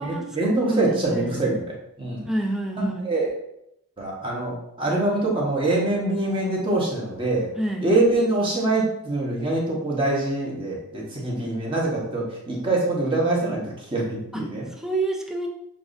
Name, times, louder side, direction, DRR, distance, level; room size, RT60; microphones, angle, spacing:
voice 1, 0.0-2.2 2.8-3.3 4.0-7.5 7.8-14.6, right 2 dB, 25° right, -4 dB, 1.1 m, -24 dB
voice 2, 0.7-1.5 2.3-3.1 7.6-7.9 14.3-14.4 14.8-15.5, right 2 dB, ahead, 0 dB, 0.4 m, -28 dB
6.8 x 2.4 x 2.6 m, 0.80 s
head